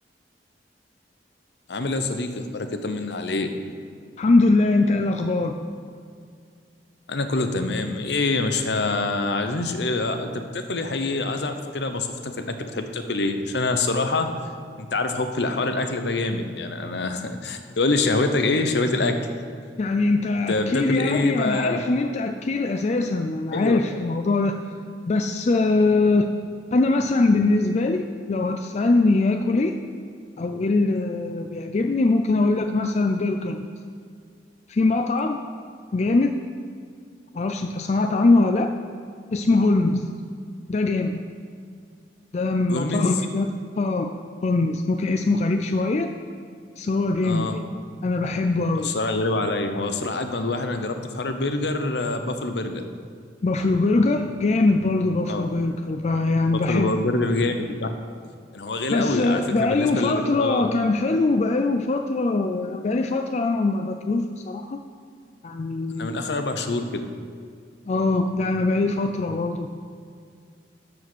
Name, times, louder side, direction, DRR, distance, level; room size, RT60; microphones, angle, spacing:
voice 1, 1.7-3.5 7.1-14.3 14.8-19.2 20.5-21.8 23.5-23.8 42.7-43.1 47.2-47.6 48.8-52.8 55.3-55.5 56.5-57.9 58.5-60.7 66.0-67.1, left 2 dB, 65° left, 7 dB, 0.8 m, -25 dB
voice 2, 4.2-5.6 19.8-24.5 25.1-26.3 26.7-29.8 30.4-33.7 34.7-35.4 35.9-36.3 37.3-38.7 39.3-40.1 40.7-41.2 42.3-43.5 43.8-44.1 44.4-46.1 46.8-47.6 48.0-48.9 53.4-57.0 58.9-64.8 65.4-66.2 67.9-69.7, left 3 dB, 40° left, 5 dB, 0.4 m, -22 dB
13.0 x 5.0 x 6.2 m, 2.2 s
head